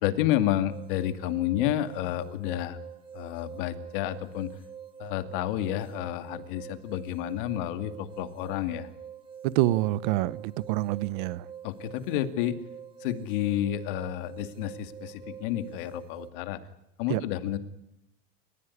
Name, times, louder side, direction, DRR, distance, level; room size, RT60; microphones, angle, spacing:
voice 1, 0.0-2.8 3.1-4.5 5.0-8.9 11.6-12.5 13.0-16.6 17.0-17.6, left 12 dB, 60° left, 2.3 m, -30 dB
sound 1, 0.7-16.3, right 8 dB, 15° right, 1.0 m, -45 dB
voice 2, 9.4-11.5 17.1-17.2, right 16 dB, 55° right, 0.8 m, -26 dB
29.0 x 15.5 x 9.8 m
supercardioid pair, 175°, 30 cm